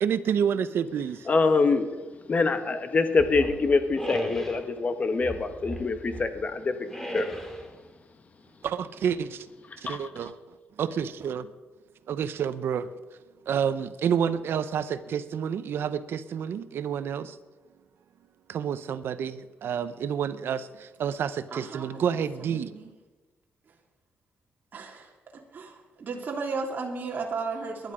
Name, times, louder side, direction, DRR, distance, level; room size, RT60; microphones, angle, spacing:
voice 1, 0.0-1.3 8.6-9.5 9.8-10.4 10.8-11.5 12.1-12.9 13.5-17.4 18.5-22.8, right 8 dB, 70° right, 13 dB, 0.8 m, -29 dB
voice 2, 1.3-1.9 2.3-7.2 9.9-10.0, left 4 dB, 35° left, 9 dB, 1.5 m, -25 dB
sound 1, 3.2-4.6 5.2-6.4 6.9-7.7, equal, 10° left, 2.6 m, -35 dB
voice 3, 21.5-22.0 22.4-22.9 24.7-25.1 25.5-27.9, right 4 dB, 45° right, 0 dB, 2.4 m, -34 dB
20.0 x 11.0 x 5.1 m, 1.3 s
cardioid pair, 115°, 4 cm